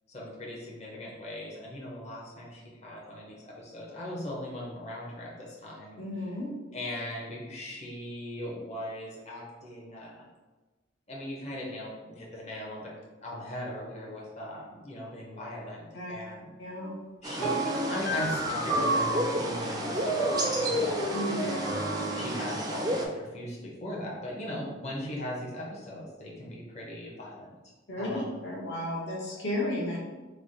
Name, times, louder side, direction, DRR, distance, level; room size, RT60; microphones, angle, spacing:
voice 1, 0.1-6.0 6.7-10.3 11.1-12.9 13.2-16.5 17.2-27.5 28.0-28.4, left 1 dB, 35° left, -4 dB, 0.8 m, -39 dB
voice 2, 6.0-6.5 15.9-16.1 16.6-16.9 21.1-21.4 27.9-30.0, left 1 dB, 65° left, -4 dB, 1.0 m, -33 dB
sound 1, 17.2-23.1, right 1 dB, 20° right, 0.3 m, -33 dB
sound 2, 17.4-22.6, right 1 dB, 90° left, 1.1 m, -30 dB
3.3 x 2.1 x 3.9 m, 1.2 s
head